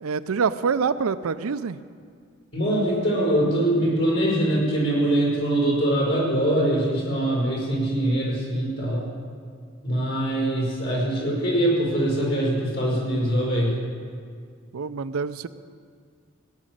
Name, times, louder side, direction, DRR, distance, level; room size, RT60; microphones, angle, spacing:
voice 1, 0.0-1.8 14.7-15.5, right 5 dB, 85° right, 13 dB, 0.5 m, -26 dB
voice 2, 2.5-9.1 9.8-13.8, right 1 dB, 65° left, -4 dB, 4.9 m, -23 dB
17.5 x 6.3 x 9.2 m, 2.1 s
head